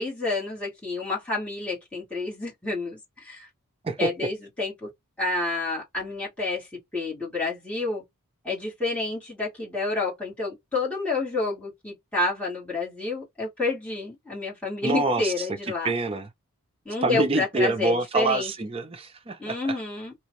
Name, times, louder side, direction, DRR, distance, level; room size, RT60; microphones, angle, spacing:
voice 1, 0.0-3.5 4.0-4.9 5.2-6.7 6.9-8.0 8.4-15.9 16.9-18.5 19.4-20.1, left 3 dB, 5° left, 1.9 m, -29 dB
voice 2, 14.8-15.3 15.8-16.3 17.0-19.8, right 2 dB, 25° right, 0.5 m, -26 dB
3.0 x 2.5 x 3.0 m
head